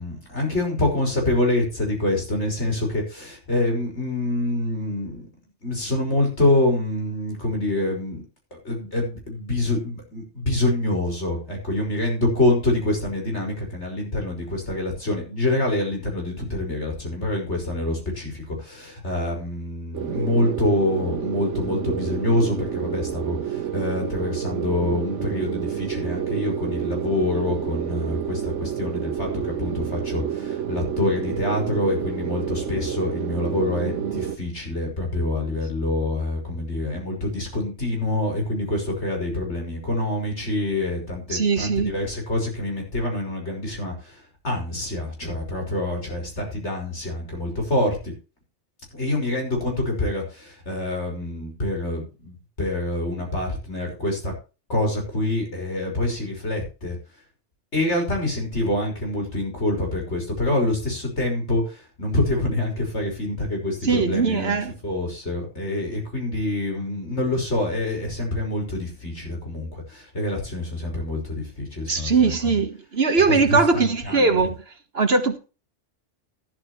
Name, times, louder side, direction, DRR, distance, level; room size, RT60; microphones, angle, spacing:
voice 1, 0.0-5.3 5.6-8.2 8.6-48.1 48.9-54.3 54.7-57.0 57.7-64.6 64.8-72.3 73.3-74.5, left 1 dB, 65° left, 6.0 m, -26 dB
sound 1, 19.9-34.4, right 9 dB, 70° right, 1.4 m, -29 dB
voice 2, 41.3-41.9 63.8-64.7 71.9-74.6 74.9-75.4, right 4 dB, 55° right, 1.6 m, -20 dB
13.0 x 13.0 x 3.2 m
omnidirectional pair, 1.3 m